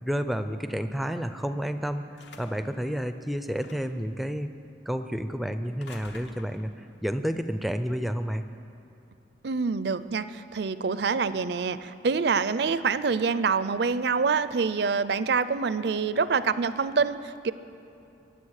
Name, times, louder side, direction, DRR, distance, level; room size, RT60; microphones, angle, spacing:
voice 1, 0.0-2.0 2.4-4.5 4.9-8.5, equal, ahead, 9 dB, 0.4 m, -30 dB
sound 1, 2.2-2.8 3.5-4.1 5.6-6.8, left 3 dB, 70° left, 1.1 m, -50 dB
voice 2, 9.4-17.5, right 5 dB, 60° right, 14 dB, 0.5 m, -26 dB
23.0 x 8.2 x 6.5 m, 2.7 s
head